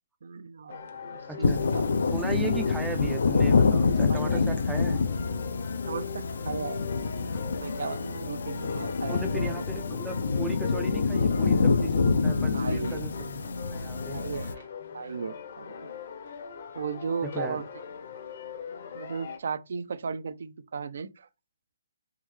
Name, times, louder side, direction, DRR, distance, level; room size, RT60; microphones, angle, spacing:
voice 1, 0.2-1.9 4.1-4.4 5.9-6.8 7.6-9.5 12.5-13.0 14.1-14.6 14.9-15.7 16.7-17.6 18.9-21.3, right 5 dB, 60° right, 0.5 m, -36 dB
sound 1, 0.7-19.4, left 6 dB, 50° left, 0.8 m, -40 dB
voice 2, 1.3-1.7 2.1-5.0 9.1-14.2 17.2-17.6, right 4 dB, 5° right, 0.4 m, -37 dB
sound 2, 1.4-14.5, left 4 dB, 70° left, 0.5 m, -26 dB
3.6 x 3.1 x 3.2 m
hypercardioid pair, 160°, 0 cm